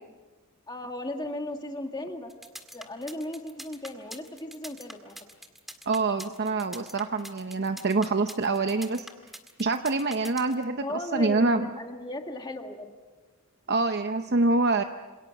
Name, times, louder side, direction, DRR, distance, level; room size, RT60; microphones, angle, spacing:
voice 1, 0.7-2.4 2.7-5.1 10.8-12.9, left 1 dB, 20° left, 4 dB, 1.9 m, -36 dB
sound 1, 2.3-10.6, equal, ahead, 1.8 m, -43 dB
voice 2, 5.9-9.1 9.6-11.7 13.7-14.8, right 3 dB, 50° right, 7 dB, 0.7 m, -26 dB
28.0 x 27.5 x 5.9 m, 1.3 s
head